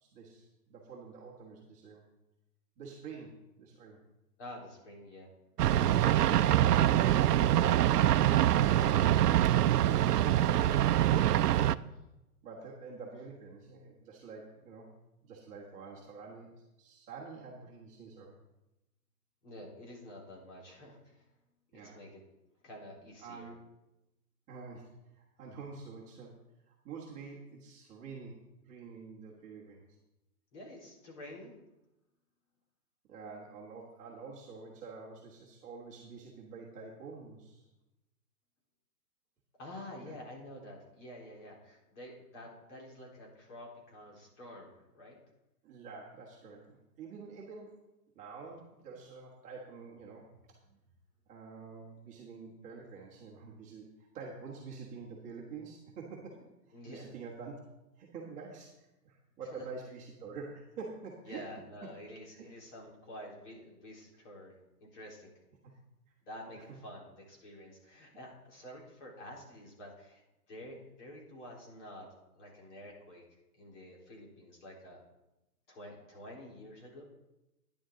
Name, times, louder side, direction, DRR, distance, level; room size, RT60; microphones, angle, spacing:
voice 1, 0.0-2.0 2.8-4.0 11.9-12.0 12.4-14.9 15.2-18.4 21.7-22.0 23.2-23.5 24.5-26.4 26.7-29.8 33.1-37.7 40.0-40.2 45.6-47.8 48.1-50.3 50.7-50.8 51.3-57.6 58.0-61.5 61.8-61.9 62.3-62.5 66.5-66.8, right 4 dB, 15° right, -4 dB, 1.3 m, -47 dB
voice 2, 4.4-5.3 19.4-21.2 21.9-22.2 22.6-23.5 30.5-31.6 39.6-45.2 56.7-57.1 59.5-59.6 61.2-65.3 66.3-70.2 70.5-72.1 72.3-73.2 73.5-75.0 75.7-77.0, left 1 dB, 50° left, -2 dB, 3.9 m, -49 dB
sound 1, 5.6-11.8, right 12 dB, 75° right, 0.6 m, -25 dB
11.5 x 10.0 x 3.8 m, 0.95 s
hypercardioid pair, 160°, 47 cm